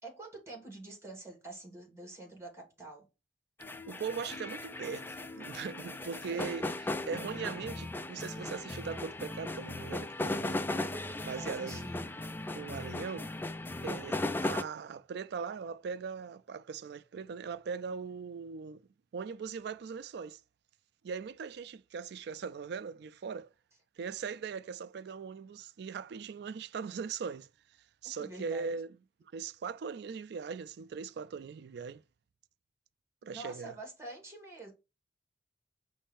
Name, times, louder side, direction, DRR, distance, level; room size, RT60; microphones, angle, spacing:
voice 1, 0.0-3.0 6.2-6.5 11.3-12.1 28.0-28.7 33.3-34.7, right 2 dB, 15° right, 1.9 m, -47 dB
sound 1, 3.6-14.6, left 2 dB, 10° left, 0.3 m, -37 dB
voice 2, 3.8-6.7 7.1-10.6 11.2-11.8 12.5-13.3 13.8-18.8 19.1-20.4 21.0-23.5 24.0-27.5 28.0-29.0 29.3-32.0 33.2-33.8, right 5 dB, 65° right, 0.3 m, -40 dB
5.2 x 2.6 x 3.5 m
head